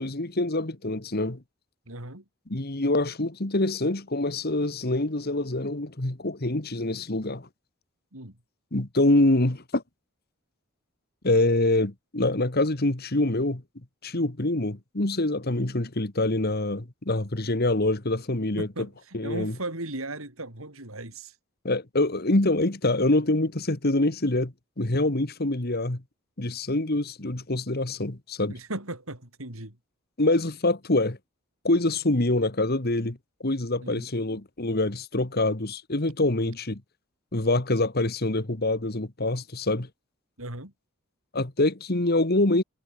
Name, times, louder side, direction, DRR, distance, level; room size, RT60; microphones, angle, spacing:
voice 1, 0.0-1.4 2.5-7.5 8.7-9.8 11.2-13.6 14.0-18.7 19.1-19.6 21.6-26.0 26.4-28.5 30.2-31.2 31.6-36.8 37.3-39.9 41.3-42.6, left 2 dB, 45° left, 1.8 m, -25 dB
voice 2, 1.9-2.3 8.1-8.4 18.6-21.3 28.5-29.8 33.8-34.1 40.4-40.7, right 2 dB, 80° right, 7.1 m, -37 dB
head